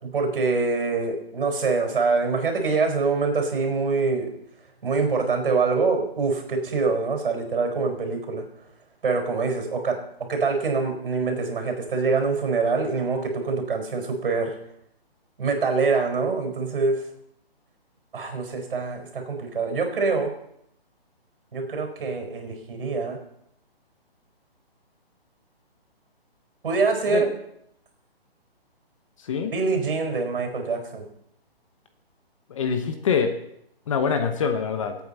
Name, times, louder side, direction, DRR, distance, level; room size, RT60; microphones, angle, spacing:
voice 1, 0.0-4.3 4.8-8.4 9.0-14.5 15.4-17.0 18.1-20.3 21.5-23.2 26.6-27.3 29.5-31.1, right 4 dB, 60° right, 4 dB, 4.5 m, -25 dB
voice 2, 32.5-33.3 33.9-34.9, left 6 dB, 30° left, 7 dB, 1.0 m, -24 dB
23.5 x 8.7 x 4.1 m, 0.73 s
hypercardioid pair, 160°, 31 cm